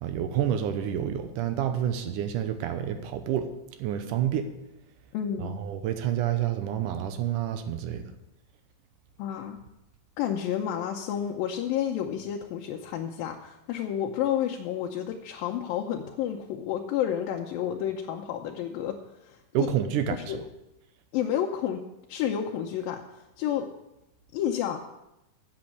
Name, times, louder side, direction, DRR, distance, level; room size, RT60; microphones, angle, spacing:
voice 1, 0.0-3.5 3.8-4.5 5.4-8.0 19.5-20.4, right 10 dB, 75° right, 8 dB, 2.2 m, -28 dB
voice 2, 5.1-5.6 9.2-9.6 10.2-19.7 20.3-20.4 21.1-21.8 22.1-23.7 24.3-24.8, left 10 dB, 80° left, 1 dB, 2.5 m, -30 dB
7.8 x 7.2 x 8.4 m, 0.91 s
omnidirectional pair, 4.1 m